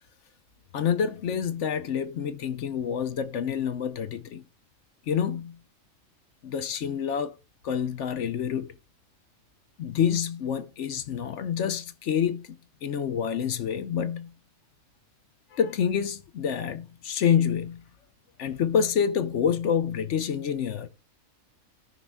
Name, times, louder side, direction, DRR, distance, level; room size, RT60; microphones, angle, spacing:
voice 1, 0.7-4.4 5.1-5.6 6.4-7.3 7.6-8.7 9.8-12.5 12.8-14.3 15.5-17.8 18.4-20.9, left 8 dB, 65° left, 1.0 m, -27 dB
17.0 x 5.8 x 2.2 m
omnidirectional pair, 1.4 m